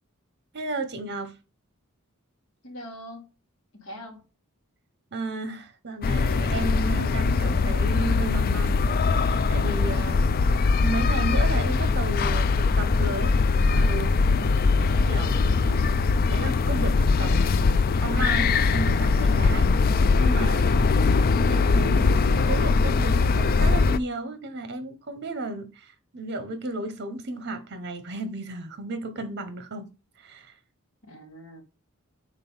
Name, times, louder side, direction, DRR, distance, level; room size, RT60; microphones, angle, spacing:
voice 1, 0.5-1.3 5.1-13.3 13.7-14.2 15.1-16.0 16.3-19.7 20.2-20.7 21.3-29.9 30.2-30.5, right 2 dB, 50° right, 1.0 m, -34 dB
voice 2, 2.6-3.3 3.7-4.2 14.4-14.8 20.6-20.9 31.0-31.6, left 1 dB, 65° left, 2.0 m, -42 dB
sound 1, 6.0-24.0, left 4 dB, 45° left, 0.4 m, -21 dB
5.3 x 4.1 x 5.5 m
head